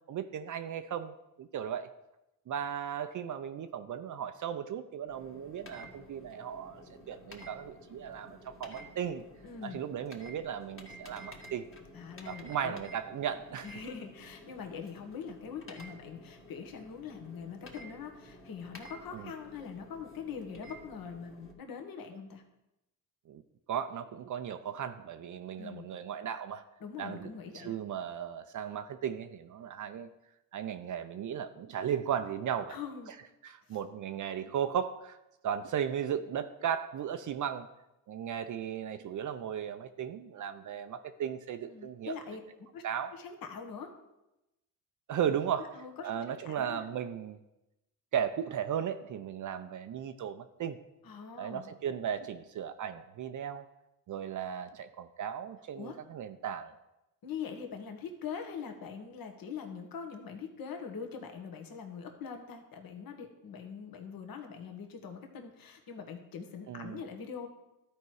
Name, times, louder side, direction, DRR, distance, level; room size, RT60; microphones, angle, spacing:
voice 1, 0.1-1.9 2.5-9.2 9.6-11.7 12.3-13.7 19.1-19.3 23.3-23.4 23.7-26.6 27.0-30.1 30.5-32.8 33.4-35.2 35.4-37.7 38.1-42.2 42.8-43.1 45.1-47.4 48.1-50.8 51.4-53.6 54.1-56.8 66.7-67.0, right 8 dB, 45° right, 9 dB, 0.6 m, -36 dB
sound 1, 5.1-21.5, equal, 30° left, 1.8 m, -52 dB
voice 2, 9.4-9.8 11.9-12.8 13.6-22.4 25.6-25.9 26.8-27.8 32.7-33.1 33.7-33.8 41.7-42.4 42.7-42.8 43.1-43.9 45.7-46.9 51.0-51.7 55.8-56.0 57.2-67.5, left 6 dB, 50° left, 4 dB, 1.5 m, -43 dB
12.5 x 4.5 x 4.7 m, 0.93 s
supercardioid pair, 75°, 43 cm